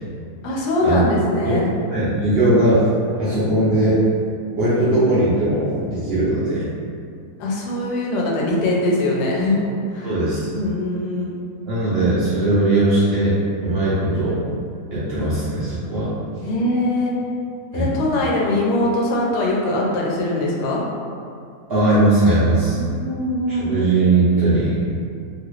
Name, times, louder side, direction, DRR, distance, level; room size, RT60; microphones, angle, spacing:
voice 1, 0.4-1.7 7.4-9.6 9.9-10.1 10.5-11.3 16.4-17.1 17.7-20.8 22.7-23.7, left 1 dB, 85° left, -3 dB, 1.2 m, -22 dB
voice 2, 1.9-2.8 3.2-4.0 4.6-6.7 10.0-10.5 11.6-13.4 13.6-14.4 14.9-16.1 17.7-17.9 21.7-22.8 23.5-24.8, right 2 dB, 60° right, -11 dB, 0.7 m, -19 dB
2.9 x 2.4 x 3.0 m, 2.4 s
omnidirectional pair, 1.7 m